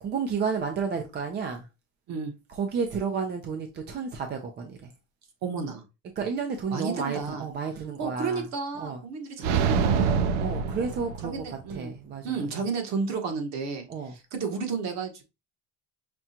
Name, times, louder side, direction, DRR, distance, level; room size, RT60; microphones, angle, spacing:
voice 1, 0.0-1.7 2.5-4.9 6.2-8.4 8.8-9.0 10.4-12.3 13.9-14.1, right 5 dB, 30° right, 0.6 m, -31 dB
voice 2, 5.4-5.8 6.7-7.4 8.0-10.3 11.2-11.9 12.2-13.9 14.3-15.2, right 5 dB, 50° right, 1.3 m, -32 dB
sound 1, 9.4-11.6, right 6 dB, 80° right, 0.6 m, -25 dB
5.9 x 2.3 x 2.8 m
supercardioid pair, 125°, 35 cm